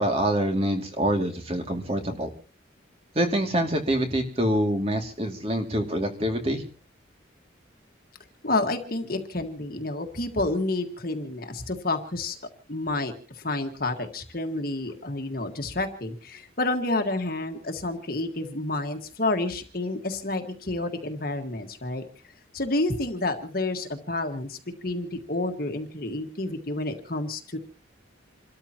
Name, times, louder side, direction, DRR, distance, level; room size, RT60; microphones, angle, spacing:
voice 1, 0.0-2.3 3.1-6.6, right 1 dB, 30° right, 3 dB, 2.5 m, -25 dB
voice 2, 8.4-12.4 12.7-22.0 22.5-24.6 24.8-27.6, left 2 dB, 50° left, 5 dB, 1.7 m, -29 dB
28.5 x 13.5 x 2.9 m, 0.36 s
head